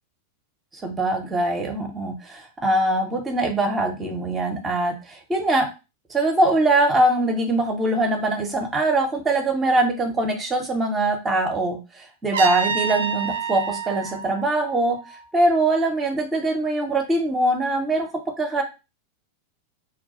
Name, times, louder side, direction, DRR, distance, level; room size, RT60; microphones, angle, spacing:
voice 1, 0.8-5.7 6.1-15.0 15.3-18.1 18.4-18.6, right 2 dB, 20° right, 3 dB, 0.6 m, -22 dB
Trumpet, 12.3-15.3, right 6 dB, 60° right, 0.4 m, -28 dB
2.3 x 2.2 x 3.9 m, 0.29 s
figure-of-eight pair, 90°, 0 cm